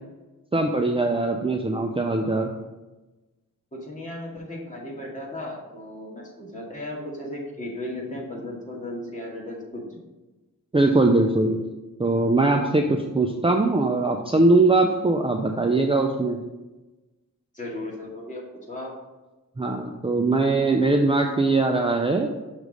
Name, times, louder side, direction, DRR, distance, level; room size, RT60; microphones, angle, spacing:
voice 1, 0.5-2.5 10.7-11.6 12.0-16.4 19.6-22.3, right 2 dB, 15° right, 3 dB, 0.5 m, -21 dB
voice 2, 3.7-10.0 17.5-18.9, left 1 dB, 20° left, -4 dB, 2.0 m, -35 dB
6.2 x 3.2 x 5.3 m, 1.1 s
cardioid pair, 50°, 33 cm